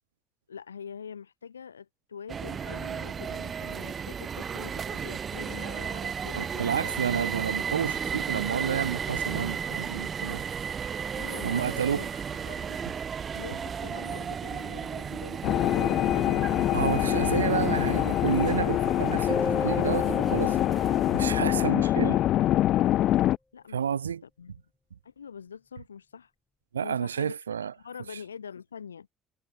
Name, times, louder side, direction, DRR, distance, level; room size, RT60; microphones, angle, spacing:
voice 1, 0.5-7.0 11.1-12.1 12.4-12.9 13.3-17.4 23.5-24.1 24.4-24.5 25.0-26.3 26.8-27.3 27.6-29.1, left 7 dB, 85° left, 2.8 m, -44 dB
sound 1, 2.3-21.2, right 7 dB, 40° right, 1.4 m, -34 dB
voice 2, 6.4-10.4 11.4-12.1 16.7-20.6 21.1-22.2 23.7-24.2 26.7-27.7, right 8 dB, 85° right, 1.3 m, -30 dB
sound 2, 15.4-23.4, left 13 dB, 55° left, 1.2 m, -25 dB
sound 3, 19.3-21.9, left 2 dB, 15° left, 6.3 m, -36 dB
figure-of-eight pair, 55°, 0 cm